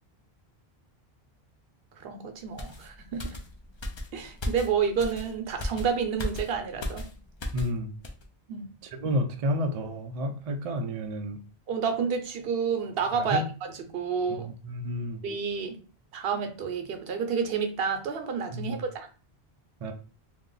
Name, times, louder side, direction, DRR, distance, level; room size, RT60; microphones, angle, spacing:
voice 1, 2.0-3.4 4.1-7.0 8.5-8.7 11.7-13.4 13.7-14.5 15.2-15.8 16.1-19.1, right 6 dB, 70° right, 6 dB, 0.8 m, -29 dB
sound 1, 2.6-7.8 8.0-8.2, left 1 dB, 45° left, 0.4 m, -36 dB
voice 2, 7.5-7.9 9.0-11.4 13.1-13.5 14.3-15.2 18.5-18.8 19.8-19.9, equal, 55° right, 5 dB, 0.4 m, -30 dB
2.7 x 2.0 x 3.7 m, 0.35 s
omnidirectional pair, 1.0 m